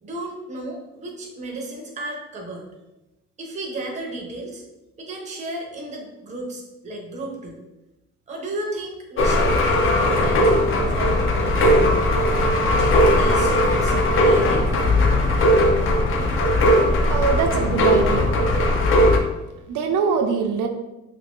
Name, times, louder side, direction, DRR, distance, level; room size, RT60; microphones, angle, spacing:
voice 1, 0.0-2.7 3.4-4.6 5.0-7.6 8.3-10.6 10.9-11.6 12.8-14.7, right 1 dB, 25° right, 0 dB, 0.5 m, -33 dB
sound 1, 9.2-19.2, left 1 dB, 45° left, 0.4 m, -18 dB
voice 2, 17.1-18.4 19.7-20.7, right 5 dB, 85° right, 4 dB, 0.5 m, -23 dB
2.7 x 2.5 x 3.5 m, 0.99 s
cardioid pair, 170°, 30 cm